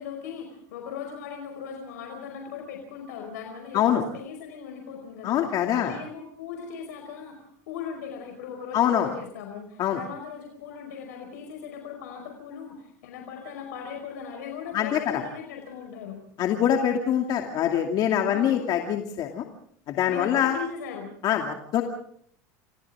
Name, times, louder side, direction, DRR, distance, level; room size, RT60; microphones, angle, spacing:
voice 1, 0.0-5.4 5.7-16.2 18.2-18.7 20.1-21.1, left 7 dB, 90° left, 3 dB, 5.0 m, -39 dB
voice 2, 5.2-6.0 8.7-9.1 9.8-10.0 14.7-15.2 16.4-19.4 19.9-20.6 21.2-21.8, left 10 dB, 50° left, 2 dB, 2.6 m, -24 dB
30.0 x 25.0 x 3.7 m, 0.63 s
supercardioid pair, 110°, 9 cm